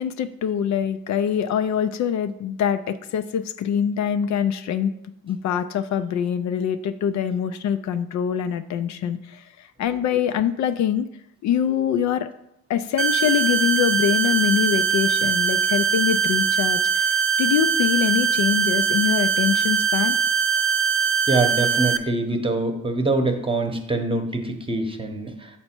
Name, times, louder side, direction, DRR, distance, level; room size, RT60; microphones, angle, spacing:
voice 1, 0.0-4.9 5.2-11.1 11.4-12.3 12.7-20.2, left 8 dB, 65° left, 11 dB, 0.4 m, -24 dB
sound 1, 13.0-22.0, right 6 dB, 45° right, 0.4 m, -21 dB
voice 2, 21.3-25.5, right 2 dB, 15° right, 5 dB, 0.9 m, -24 dB
6.7 x 4.3 x 4.4 m, 0.82 s
cardioid pair, 90°, 30 cm